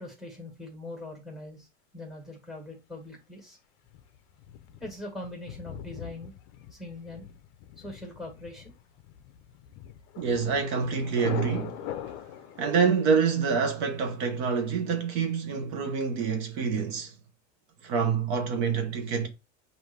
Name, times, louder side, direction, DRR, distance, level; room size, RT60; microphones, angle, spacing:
voice 1, 0.0-1.7 1.9-3.6 4.8-6.3 6.7-7.2 7.8-8.7, left 1 dB, ahead, 1.4 m, -41 dB
Thunder, 3.9-12.9, left 10 dB, 45° left, 0.5 m, -42 dB
voice 2, 10.2-11.9 12.6-17.1 17.8-19.3, right 6 dB, 60° right, 1.0 m, -27 dB
5.2 x 2.6 x 3.1 m
supercardioid pair, 150°, 38 cm